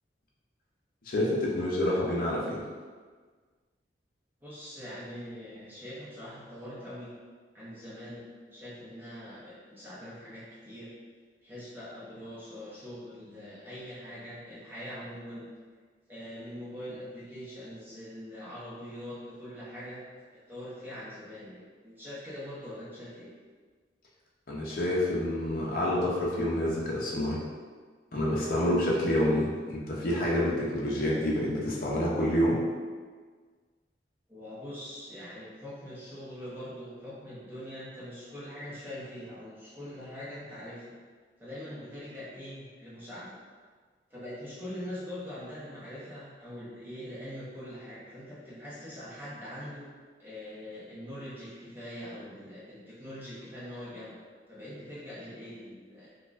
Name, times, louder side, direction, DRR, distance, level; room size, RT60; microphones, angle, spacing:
voice 1, 1.1-2.6 24.5-27.4 28.1-32.6, left 1 dB, 55° left, -5 dB, 0.6 m, -28 dB
voice 2, 4.4-7.1 7.5-10.9 11.4-15.4 16.1-20.0 20.5-23.3 29.2-29.3 34.3-40.9 41.4-43.4 44.1-49.9 50.2-54.1 54.5-56.1, equal, 10° right, -10 dB, 0.9 m, -43 dB
4.3 x 2.3 x 2.5 m, 1.5 s
head